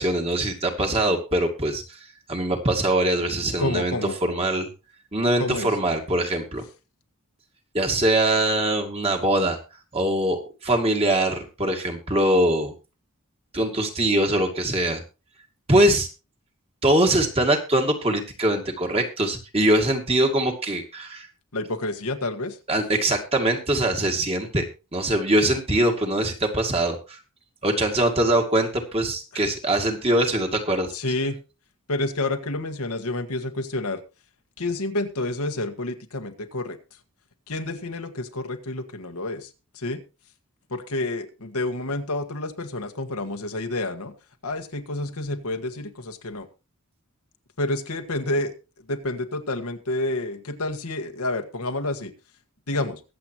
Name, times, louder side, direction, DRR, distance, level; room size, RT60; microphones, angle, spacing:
voice 1, 0.0-1.8 2.3-4.7 5.1-6.6 7.7-9.6 9.9-12.7 13.5-15.0 15.7-16.1 16.8-21.3 22.7-24.6 24.9-27.0 27.6-30.9, right 1 dB, 25° right, 3 dB, 2.3 m, -22 dB
voice 2, 3.6-4.2 5.4-5.7 21.5-22.6 29.3-29.4 30.9-31.4 31.9-34.0 34.6-36.8 37.5-39.5 39.7-40.0 40.7-44.1 44.4-46.5 47.6-48.5 48.9-52.1 52.7-53.0, left 2 dB, 85° left, 6 dB, 1.7 m, -29 dB
22.5 x 8.0 x 3.0 m, 0.31 s
head